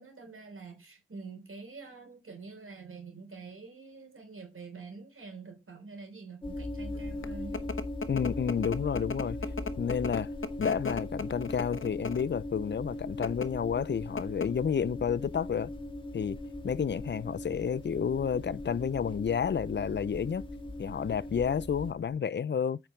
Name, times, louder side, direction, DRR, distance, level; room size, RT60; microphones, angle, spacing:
voice 1, 0.0-7.7, right 4 dB, 90° right, 3.5 m, -46 dB
sound 1, 6.4-21.9, left 1 dB, 25° left, 2.1 m, -39 dB
sound 2, 6.9-22.2, left 4 dB, 75° left, 0.9 m, -40 dB
voice 2, 8.1-9.4 9.8-10.3 10.6-15.7 16.1-16.4 16.6-20.4 20.8-22.8, left 7 dB, 60° left, 0.4 m, -30 dB
8.8 x 5.9 x 4.4 m
wide cardioid pair, 75°, 21 cm